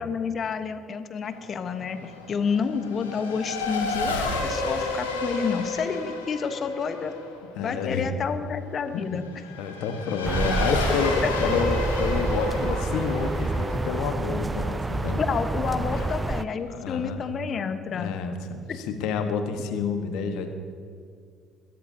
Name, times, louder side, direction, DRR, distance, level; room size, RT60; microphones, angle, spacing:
voice 1, 0.0-7.1 7.6-9.2 11.2-11.3 15.2-18.1 18.7-18.8, left 6 dB, 45° left, 9 dB, 1.2 m, -29 dB
Race car auto racing / Accelerating revving vroom, 1.2-15.3, left 3 dB, 85° left, 1.8 m, -32 dB
voice 2, 7.4-8.1 8.9-9.2 9.6-11.1 11.4-15.2 15.7-16.1 16.7-17.2 17.9-20.5, left 5 dB, 65° left, 6 dB, 1.4 m, -29 dB
sound 1, 10.2-16.4, right 3 dB, 20° right, 0.5 m, -28 dB
21.5 x 16.5 x 2.8 m, 2.3 s
figure-of-eight pair, 50°, 0 cm